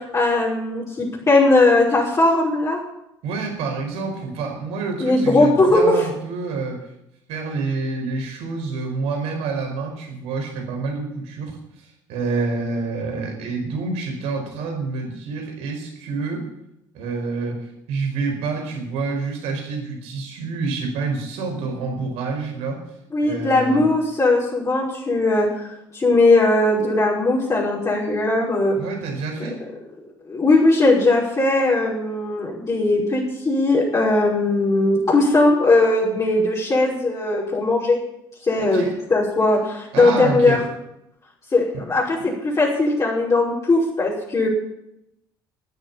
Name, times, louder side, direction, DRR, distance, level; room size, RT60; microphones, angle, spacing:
voice 1, 0.1-2.8 5.0-5.8 23.1-28.8 30.3-38.0 38.5-38.8 39.1-40.6 41.5-44.5, left 2 dB, 30° left, -6 dB, 5.7 m, -19 dB
voice 2, 3.2-6.8 7.3-16.5 16.9-22.8 23.2-23.9 28.7-29.6 38.6-38.9 39.9-40.6 41.7-41.8, right 4 dB, 70° right, 4 dB, 5.0 m, -27 dB
14.5 x 9.5 x 8.8 m, 0.83 s
hypercardioid pair, 65°, 11 cm